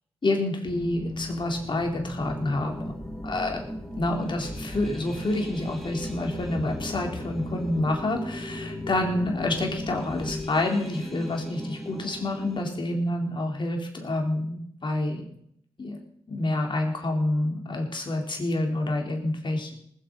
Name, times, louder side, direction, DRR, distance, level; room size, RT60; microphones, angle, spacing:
voice 1, 0.2-2.9 3.2-15.2 15.8-16.0 16.3-19.7, left 2 dB, 50° left, 1 dB, 4.2 m, -28 dB
sound 1, 0.6-10.5, left 2 dB, 30° left, 2.4 m, -38 dB
sound 2, 2.2-12.6, equal, ahead, 2.6 m, -39 dB
19.5 x 8.2 x 5.6 m, 0.69 s
supercardioid pair, 45°, 11 cm